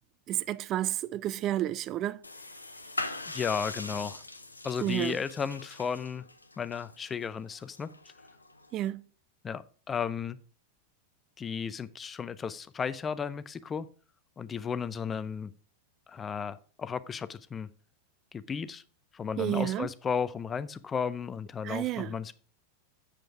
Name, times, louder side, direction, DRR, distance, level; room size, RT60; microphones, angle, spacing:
voice 1, 0.3-2.2 4.8-5.2 8.7-9.0 19.4-19.9 21.6-22.1, right 13 dB, 35° right, 0.3 m, -31 dB
sound 1, 2.2-8.9, left 2 dB, 80° left, 0.7 m, -42 dB
voice 2, 3.3-4.2 4.6-6.2 6.6-7.9 9.4-10.4 11.4-13.9 14.4-15.5 16.1-17.7 18.3-18.8 19.1-22.3, left 6 dB, 20° left, 0.5 m, -34 dB
7.7 x 7.4 x 4.8 m
figure-of-eight pair, 90°, 0 cm